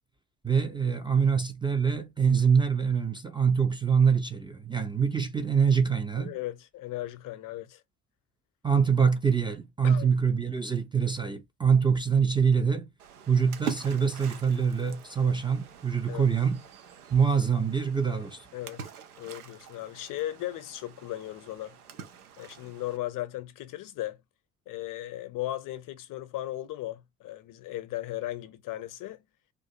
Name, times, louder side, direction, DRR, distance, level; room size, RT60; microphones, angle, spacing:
voice 1, 0.4-6.4 8.6-12.9 13.3-16.6 17.1-18.4, right 6 dB, 10° right, 0.4 m, -25 dB
voice 2, 6.2-7.8 9.8-10.1 16.1-16.3 18.5-18.9 19.2-21.8 22.4-24.2 24.7-29.2, left 15 dB, 45° left, 0.6 m, -36 dB
Splash splatter, 13.0-23.0, right 8 dB, 85° right, 0.5 m, -45 dB
2.5 x 2.4 x 2.7 m
figure-of-eight pair, 45°, 44 cm